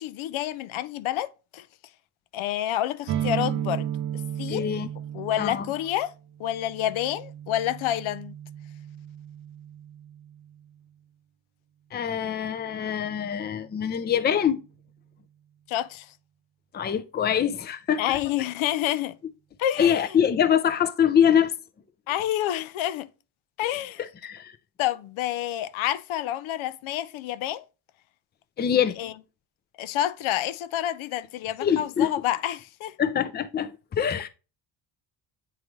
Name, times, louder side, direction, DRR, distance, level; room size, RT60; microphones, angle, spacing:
voice 1, 0.0-1.6 2.3-3.9 4.4-4.7 5.1-6.1 6.4-8.3 15.7-16.1 18.0-19.2 19.6-20.2 22.1-23.1 23.6-24.0 24.8-27.6 29.0-29.1 29.8-32.9, left 12 dB, 75° left, 0.6 m, -28 dB
sound 1, 3.1-10.7, right 10 dB, 55° right, 0.6 m, -34 dB
voice 2, 4.5-4.9 5.4-5.7 11.9-14.6 16.7-18.0 19.8-21.5 24.0-24.5 28.6-29.0 31.6-32.1 33.0-34.3, left 8 dB, 20° left, 0.4 m, -24 dB
8.3 x 3.8 x 3.0 m
cardioid pair, 125°, 48 cm